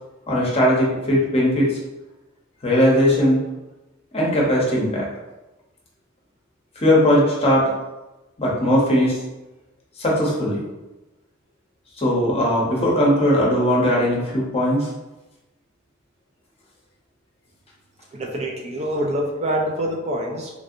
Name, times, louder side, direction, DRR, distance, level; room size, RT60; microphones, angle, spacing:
voice 1, 0.3-1.8 2.6-3.4 4.1-5.1 6.8-7.7 8.4-9.2 10.0-10.6 12.0-14.9, equal, 30° left, -4 dB, 0.8 m, -19 dB
voice 2, 18.1-20.5, equal, 30° right, 0 dB, 0.4 m, -25 dB
3.2 x 2.6 x 2.5 m, 1.0 s
head